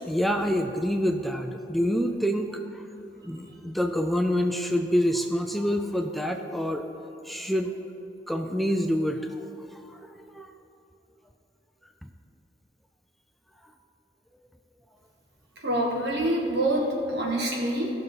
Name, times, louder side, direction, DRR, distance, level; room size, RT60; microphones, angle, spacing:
voice 1, 0.0-2.8 3.2-6.8 7.2-7.7 8.3-9.4 9.7-10.5, equal, ahead, 4 dB, 0.4 m, -27 dB
voice 2, 15.6-17.9, right 1 dB, 70° right, -2 dB, 2.0 m, -26 dB
16.0 x 6.4 x 4.0 m, 2.8 s
head